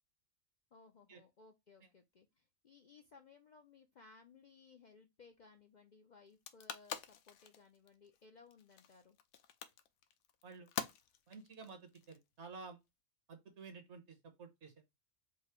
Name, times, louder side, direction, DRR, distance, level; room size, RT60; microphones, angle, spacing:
voice 1, 0.7-9.2, left 4 dB, 55° left, 0.5 m, -62 dB
sound 1, 6.3-12.6, left 9 dB, 75° left, 0.9 m, -47 dB
voice 2, 11.3-12.8 13.3-14.7, right 4 dB, 65° right, 1.3 m, -52 dB
4.6 x 2.0 x 4.3 m
omnidirectional pair, 1.3 m